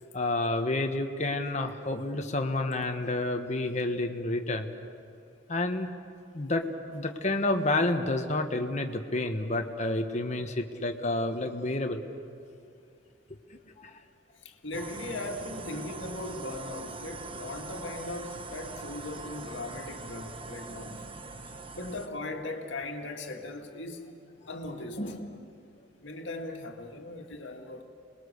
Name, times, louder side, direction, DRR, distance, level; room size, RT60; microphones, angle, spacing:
voice 1, 0.1-4.7 5.5-5.9 6.3-6.6 6.9-12.0 13.3-13.4 13.8-13.9 15.7-15.8 25.0-25.5, left 2 dB, 35° left, 1.3 m, -29 dB
voice 2, 14.4-21.0 21.7-24.1 24.5-25.1 26.0-27.8, left 2 dB, 70° left, 2.1 m, -38 dB
sound 1, 14.7-22.1, right 3 dB, 25° right, 0.9 m, -42 dB
27.0 x 20.5 x 6.7 m
head